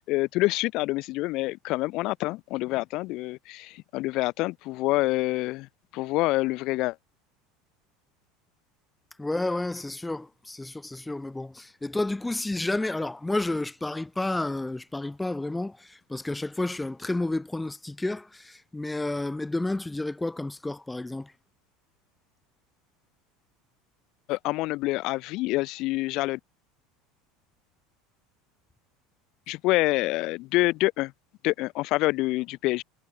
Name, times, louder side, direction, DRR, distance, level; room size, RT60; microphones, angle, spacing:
voice 1, 0.0-5.7 5.9-7.0 24.3-26.4 29.5-31.1 31.4-32.8, left 20 dB, 60° left, 1.7 m, -27 dB
voice 2, 9.2-21.3, left 2 dB, 10° left, 4.6 m, -31 dB
supercardioid pair, 100°, 0 cm